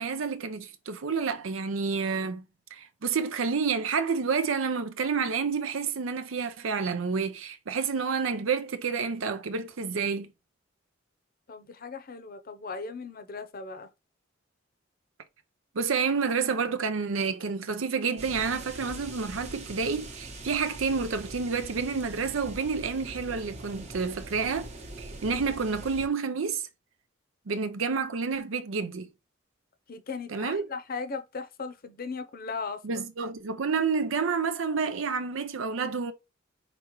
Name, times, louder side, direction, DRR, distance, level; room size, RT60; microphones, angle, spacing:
voice 1, 0.0-2.4 2.7-10.3 15.7-24.7 25.0-26.6 27.5-29.1 30.3-30.7 32.8-36.1, right 5 dB, 90° right, 0.6 m, -29 dB
voice 2, 11.5-13.9 29.9-33.0, left 4 dB, 50° left, 0.7 m, -37 dB
sound 1, 18.2-26.1, right 2 dB, 35° right, 0.9 m, -42 dB
5.0 x 3.4 x 3.0 m
head